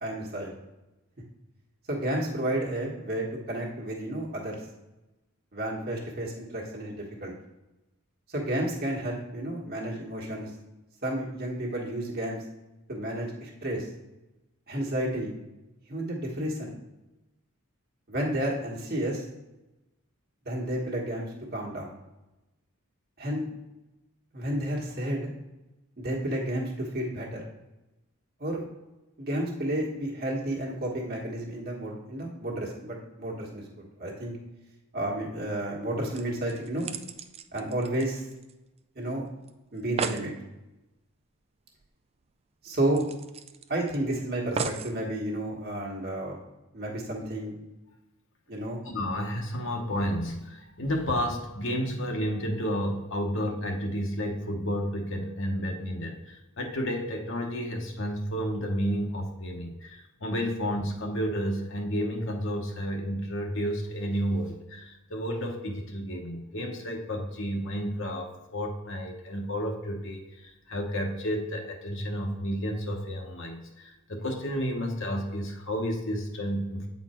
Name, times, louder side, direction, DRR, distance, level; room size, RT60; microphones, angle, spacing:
voice 1, 0.0-0.5 1.9-4.6 5.5-6.9 7.2-7.3 8.3-10.5 11.0-12.4 12.9-13.9 14.7-15.3 15.9-16.7 18.1-19.2 20.4-21.9 23.2-23.4 24.3-25.3 26.0-27.5 28.4-28.6 29.2-34.4 34.9-36.9 37.5-38.2 39.0-39.2 39.7-40.3 42.6-43.0 43.7-46.4 46.7-47.6 48.5-48.8, right 1 dB, 45° right, -2 dB, 1.4 m, -31 dB
sound 1, 35.8-35.9 36.1-38.8 39.1-39.2 39.5-39.6 39.8-40.3 41.8-41.9 42.2-42.3 42.9-44.0 44.6-45.0 45.7-45.8, right 5 dB, 30° right, 0.3 m, -36 dB
voice 2, 48.8-76.9, equal, 60° left, 2 dB, 1.0 m, -31 dB
8.6 x 4.2 x 4.3 m, 1.0 s
head